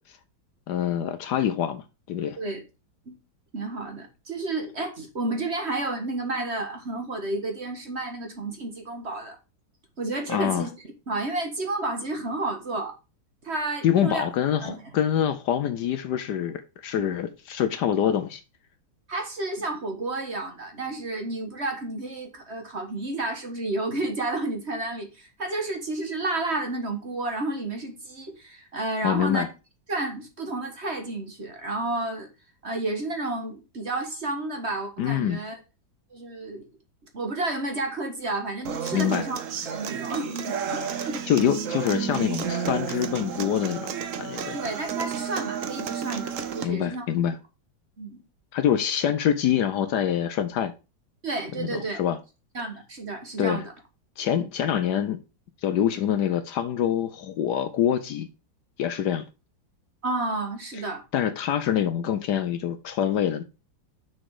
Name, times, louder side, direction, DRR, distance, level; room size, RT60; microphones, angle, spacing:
voice 1, 0.7-2.4 10.3-10.7 13.8-18.4 29.0-29.5 35.0-35.4 38.9-39.3 40.9-43.9 44.2-44.6 46.6-47.4 48.5-50.7 51.6-52.2 53.4-53.6 54.2-55.2 55.6-58.3 58.8-59.2 61.1-63.4, left 9 dB, 70° left, 1.2 m, -25 dB
voice 2, 3.5-9.4 10.0-10.7 11.1-12.9 13.4-14.3 14.6-14.8 19.1-29.4 29.9-32.3 32.6-35.6 36.1-36.7 37.1-39.4 39.6-41.3 44.5-47.0 48.0-48.2 51.2-52.0 52.5-53.7 60.0-61.0, right 2 dB, 35° right, 1.6 m, -31 dB
Human voice / Acoustic guitar, 38.6-46.6, right 7 dB, 55° right, 1.0 m, -31 dB
6.4 x 6.1 x 4.7 m
omnidirectional pair, 2.1 m